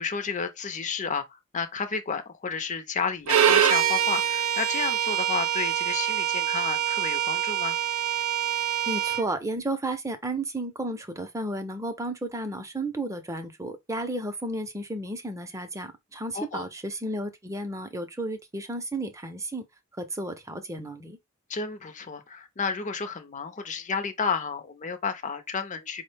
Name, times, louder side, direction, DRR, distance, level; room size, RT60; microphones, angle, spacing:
voice 1, 0.0-7.8 16.3-16.6 21.5-26.0, left 5 dB, 35° left, 0.6 m, -32 dB
Bowed string instrument, 3.3-9.3, right 9 dB, 80° right, 0.6 m, -25 dB
voice 2, 8.9-19.6 20.0-21.2, right 1 dB, 15° right, 0.6 m, -33 dB
4.7 x 2.1 x 3.3 m
head